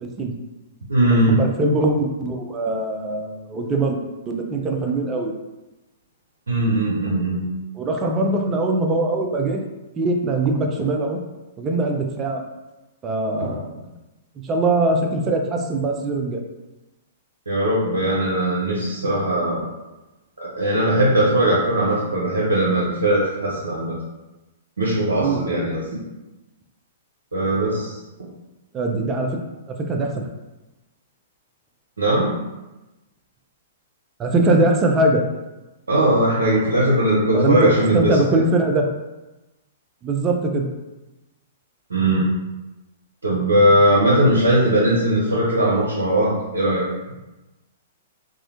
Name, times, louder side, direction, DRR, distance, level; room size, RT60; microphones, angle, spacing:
voice 1, 0.0-0.3 1.3-5.3 7.0-7.1 7.8-9.6 10.0-11.2 11.6-12.4 13.0-13.7 14.4-16.4 25.2-25.4 28.7-29.4 29.7-30.1 34.2-35.2 37.3-37.6 37.9-38.9 40.0-40.7, right 2 dB, 25° right, 2 dB, 0.4 m, -22 dB
voice 2, 0.9-1.4 6.5-7.5 13.4-13.5 17.5-19.7 20.4-24.0 24.8-25.8 27.3-28.0 32.0-32.3 35.9-38.4 41.9-42.3 43.2-46.9, right 1 dB, 85° right, -7 dB, 0.6 m, -19 dB
2.3 x 2.0 x 2.8 m, 1.0 s
hypercardioid pair, 115°, 0 cm